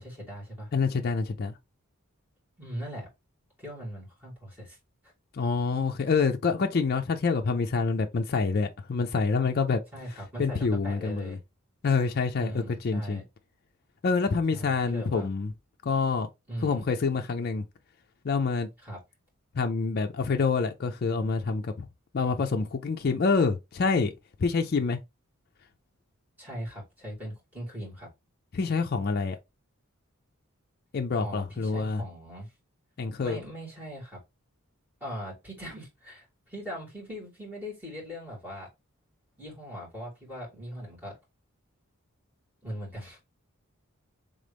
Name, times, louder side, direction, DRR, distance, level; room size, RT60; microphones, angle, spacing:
voice 1, 0.0-0.7 2.6-3.1 3.6-4.8 9.9-11.4 12.3-13.3 14.5-15.3 16.5-16.8 18.8-19.0 26.4-28.1 31.2-32.5 33.2-34.2 35.0-38.7 39.4-41.2 42.6-43.2, equal, 10° right, 2.9 m, -40 dB
voice 2, 0.7-1.5 5.3-9.8 10.4-11.4 11.8-13.2 14.0-15.5 15.8-16.3 16.6-17.6 18.2-18.7 19.5-21.9 22.1-24.1 24.4-25.0 28.5-29.4 30.9-32.0 33.0-33.4, left 4 dB, 45° left, 0.4 m, -27 dB
3.9 x 3.6 x 3.4 m
head